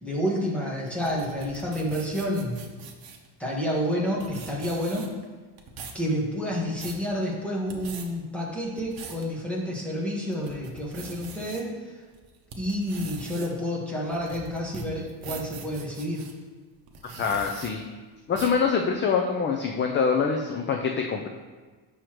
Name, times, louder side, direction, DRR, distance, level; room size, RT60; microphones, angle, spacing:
voice 1, 0.0-2.6 3.4-5.1 5.9-11.7 12.6-16.2, equal, 5° left, -4 dB, 1.2 m, -29 dB
sound 1, 0.9-3.3 3.9-4.0 4.2-5.2 5.6-6.0 6.5-7.0 7.6-8.1 8.6-9.2 9.7-9.8 10.3-11.6 12.1-16.3 16.9-17.7 18.3-18.6, right 5 dB, 55° right, 0.9 m, -42 dB
voice 2, 17.1-17.8 18.3-21.3, left 5 dB, 30° left, 3 dB, 0.3 m, -25 dB
7.9 x 6.3 x 3.0 m, 1.4 s
cardioid pair, 170°, 43 cm